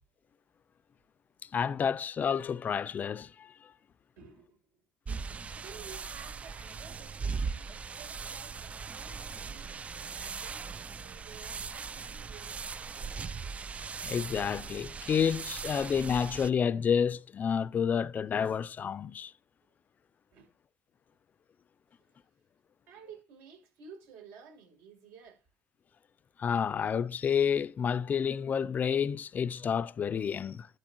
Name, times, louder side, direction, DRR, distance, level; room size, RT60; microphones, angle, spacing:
voice 1, 1.5-3.7 14.0-19.3 26.4-30.7, left 7 dB, 40° left, 0.5 m, -30 dB
voice 2, 4.2-4.8 5.5-13.3 20.3-20.5 22.9-25.5, right 6 dB, 75° right, 6.6 m, -53 dB
sound 1, 5.1-16.5, right 5 dB, 30° right, 0.5 m, -39 dB
12.0 x 8.1 x 3.1 m
supercardioid pair, 75°, 4 cm